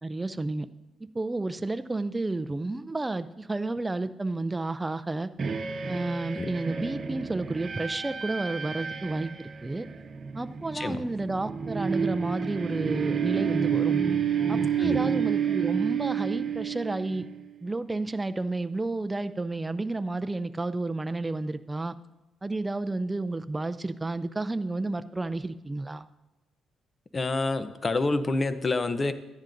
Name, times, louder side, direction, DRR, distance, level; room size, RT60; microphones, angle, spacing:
voice 1, 0.0-0.7 1.1-5.3 5.9-9.9 10.3-13.9 14.5-17.3 17.6-21.9 22.4-26.0, right 2 dB, 15° right, 11 dB, 0.5 m, -31 dB
sound 1, 5.4-17.4, right 7 dB, 45° right, 1.1 m, -30 dB
voice 2, 27.1-29.1, left 3 dB, 30° left, 11 dB, 0.7 m, -27 dB
13.5 x 10.5 x 2.6 m, 1.1 s
cardioid pair, 90°, 0 cm